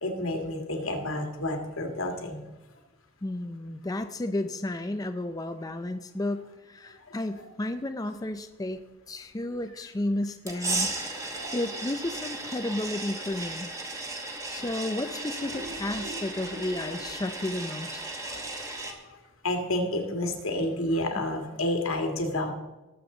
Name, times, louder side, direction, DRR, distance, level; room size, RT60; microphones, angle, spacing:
voice 1, 0.0-2.4 7.1-7.2 11.3-11.5 16.8-16.9 18.3-18.4 18.8-19.0 19.4-22.5, left 1 dB, 85° left, 3 dB, 2.1 m, -30 dB
voice 2, 3.2-8.8 9.1-13.7 14.5-18.0 21.2-21.3, left 1 dB, 20° left, 8 dB, 0.5 m, -32 dB
sound 1, 10.5-18.9, right 2 dB, 15° right, 1.4 m, -35 dB
sound 2, 15.4-18.4 18.8-18.9 19.3-19.4 19.7-19.8, right 1 dB, 85° right, 2.1 m, -45 dB
19.0 x 8.0 x 3.9 m, 1.1 s
head